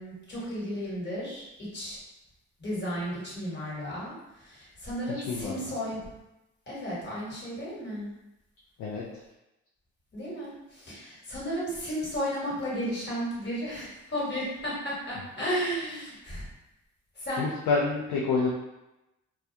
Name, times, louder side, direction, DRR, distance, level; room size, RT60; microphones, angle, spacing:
voice 1, 0.0-2.0 2.6-6.1 6.7-8.1 10.1-16.5 17.2-17.5, equal, 35° left, -7 dB, 1.3 m, -34 dB
voice 2, 5.1-5.6 8.8-9.0 17.4-18.5, left 4 dB, 85° left, -4 dB, 0.5 m, -28 dB
2.3 x 2.2 x 2.7 m, 0.94 s
cardioid pair, 90°, 30 cm